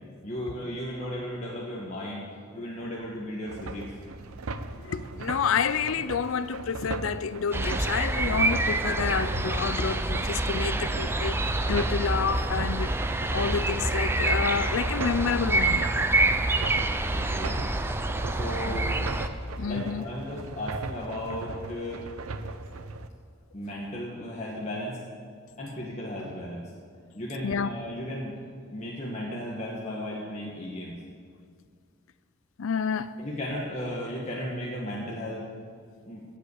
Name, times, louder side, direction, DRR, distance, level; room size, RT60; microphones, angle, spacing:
voice 1, 0.2-3.9 17.1-17.6 18.3-18.9 19.6-22.1 23.5-25.0 25.6-26.7 27.1-28.3 28.7-31.0 33.2-35.5 36.0-36.2, equal, 30° left, 1.3 m, -35 dB
sound 1, 3.5-23.1, right 3 dB, 90° right, 0.7 m, -39 dB
voice 2, 4.8-15.9 18.7-18.8 19.6-20.1 27.4-27.7 32.6-33.1, left 6 dB, 70° left, 0.5 m, -29 dB
sound 2, 7.5-19.3, right 2 dB, 10° right, 0.4 m, -27 dB
16.0 x 5.5 x 8.3 m
head